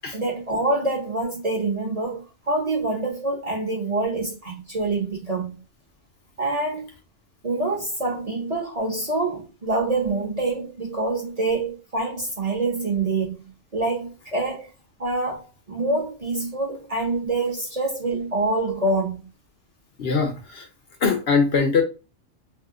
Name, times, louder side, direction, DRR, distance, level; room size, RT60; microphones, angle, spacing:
voice 1, 0.1-5.6 6.4-6.9 7.4-14.7 15.0-19.2, right 2 dB, 35° right, 0.8 m, -26 dB
voice 2, 20.0-20.7 21.0-21.8, left 5 dB, 60° left, 0.8 m, -21 dB
2.7 x 2.1 x 3.6 m
omnidirectional pair, 1.3 m